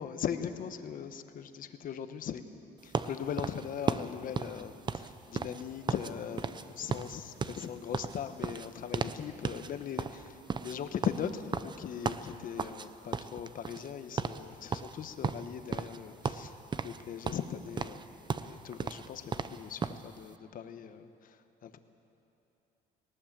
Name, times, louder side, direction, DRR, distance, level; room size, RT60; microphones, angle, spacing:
voice 1, 0.0-2.4 2.8-16.6 16.8-18.1 18.4-21.8, left 8 dB, 55° left, 9 dB, 1.2 m, -39 dB
sound 1, 2.9-6.1 6.4-6.6 6.9-9.2 9.4-9.7 10.0-12.9 13.1-13.9 14.2-14.4 14.7-16.0 16.2-17.0 17.3-20.0, right 5 dB, 25° right, 0.7 m, -35 dB
19.5 x 18.0 x 7.5 m, 2.8 s
cardioid pair, 110°, 17 cm